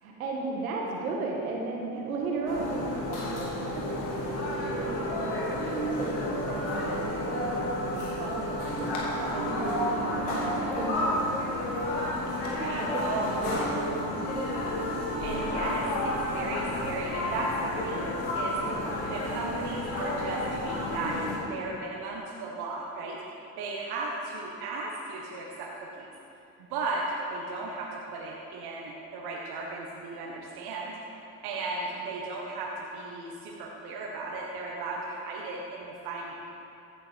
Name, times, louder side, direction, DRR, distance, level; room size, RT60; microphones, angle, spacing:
voice 1, 0.0-11.1 12.5-14.1, right 3 dB, 90° right, -1 dB, 1.7 m, -35 dB
sound 1, 2.5-21.4, left 1 dB, 70° left, 2.6 m, -31 dB
voice 2, 12.5-14.1 15.2-18.8 19.1-21.2 21.5-26.1 26.6-30.9 31.4-36.4, right 3 dB, 65° right, -2 dB, 1.5 m, -36 dB
15.0 x 7.5 x 5.2 m, 2.7 s
hypercardioid pair, 55°, 41 cm